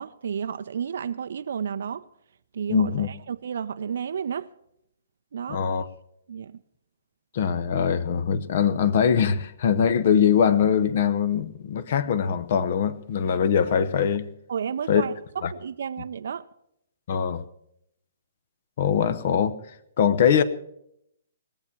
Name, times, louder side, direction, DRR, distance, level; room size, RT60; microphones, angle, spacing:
voice 1, 0.0-2.0 2.5-4.5 5.3-5.7 6.3-6.6 14.5-15.1 15.5-16.5, right 7 dB, 60° right, 0.5 m, -32 dB
voice 2, 2.7-3.1 5.5-5.8 7.3-14.3 14.9-15.0 15.4-15.5 17.1-17.4 18.8-19.6 20.0-20.4, left 7 dB, 50° left, 0.9 m, -22 dB
19.5 x 7.2 x 7.2 m
figure-of-eight pair, 125°, 0 cm